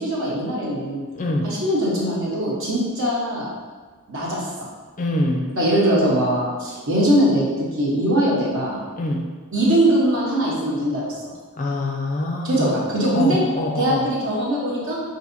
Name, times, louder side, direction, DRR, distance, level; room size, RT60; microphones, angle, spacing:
voice 1, 0.0-1.1 1.4-3.5 4.1-4.4 5.6-8.8 9.5-11.1 12.4-13.4 13.8-15.0, right 1 dB, 60° right, -5 dB, 1.1 m, -21 dB
voice 2, 1.1-1.5 5.0-5.5 9.0-9.3 11.6-12.7 13.1-14.1, left 1 dB, 35° left, 1 dB, 0.4 m, -24 dB
5.5 x 2.7 x 2.7 m, 1.4 s
head